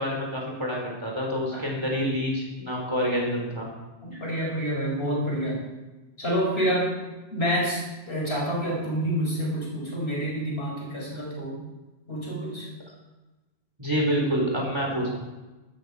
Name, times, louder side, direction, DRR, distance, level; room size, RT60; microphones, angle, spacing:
voice 1, 0.0-3.7 4.1-4.2 13.8-15.1, equal, 25° right, -2 dB, 4.4 m, -27 dB
voice 2, 1.5-1.9 4.0-5.6 6.2-6.9 7.3-11.6 12.1-12.7, equal, 70° left, -3 dB, 5.4 m, -28 dB
13.5 x 13.0 x 5.1 m, 1.1 s
omnidirectional pair, 1.1 m